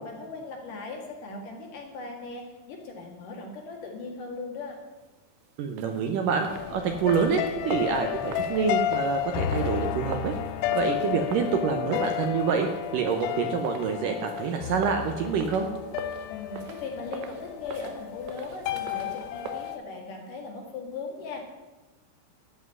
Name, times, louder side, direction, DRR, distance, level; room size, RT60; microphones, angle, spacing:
voice 1, 0.0-4.8 16.3-21.5, left 3 dB, 60° left, 1 dB, 3.2 m, -38 dB
voice 2, 5.6-10.4 10.7-12.7 12.9-15.7, right 6 dB, 70° right, 4 dB, 2.2 m, -27 dB
sound 1, 5.7-19.8, right 8 dB, 90° right, 2.9 m, -43 dB
sound 2, 6.5-19.8, left 10 dB, 85° left, 2.3 m, -32 dB
13.5 x 5.6 x 9.5 m, 1.1 s
omnidirectional pair, 4.6 m